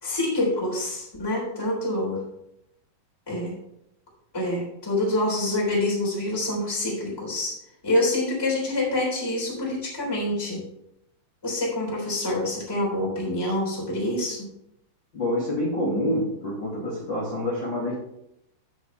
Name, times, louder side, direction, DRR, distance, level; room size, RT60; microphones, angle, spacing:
voice 1, 0.0-2.2 3.3-3.6 4.3-7.6 7.8-10.6 11.4-14.5, left 1 dB, 5° left, -4 dB, 3.2 m, -26 dB
voice 2, 15.1-17.9, left 1 dB, 30° left, -9 dB, 2.9 m, -27 dB
15.5 x 6.3 x 3.4 m, 0.80 s
omnidirectional pair, 5.4 m